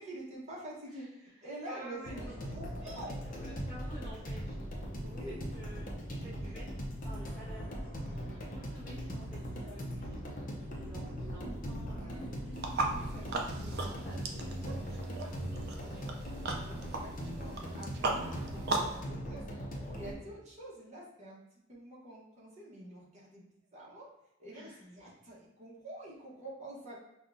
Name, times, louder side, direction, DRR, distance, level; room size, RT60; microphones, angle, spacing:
voice 1, 0.0-3.1 5.0-5.6 6.4-6.5 9.5-9.8 12.0-13.4 16.6-19.4 19.8-21.4 21.7-23.5 23.7-24.1 24.4-27.0, right 1 dB, 35° right, -5 dB, 1.1 m, -47 dB
voice 2, 1.6-2.5 2.8-2.9 3.3-4.6 5.3-5.8 6.2-12.2 12.9-16.3 24.5-24.8, right 1 dB, 5° right, -12 dB, 0.8 m, -52 dB
sound 1, 2.0-20.1, equal, 40° left, 0.6 m, -40 dB
sound 2, 12.5-19.0, right 3 dB, 55° right, 0.5 m, -37 dB
5.3 x 2.3 x 2.6 m, 0.86 s
head